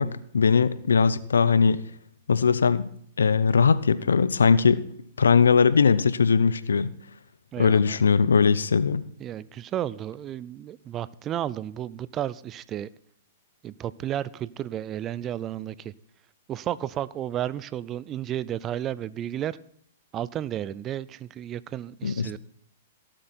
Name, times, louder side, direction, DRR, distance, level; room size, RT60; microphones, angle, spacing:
voice 1, 0.0-1.8 2.3-2.9 3.2-4.8 5.2-6.9 7.6-9.0 22.0-22.4, left 5 dB, 85° left, 0.7 m, -20 dB
voice 2, 7.5-8.0 9.2-12.9 13.6-15.9 16.5-19.6 20.1-22.4, right 11 dB, 30° right, 0.5 m, -32 dB
17.5 x 7.7 x 4.4 m
hypercardioid pair, 120°, 0 cm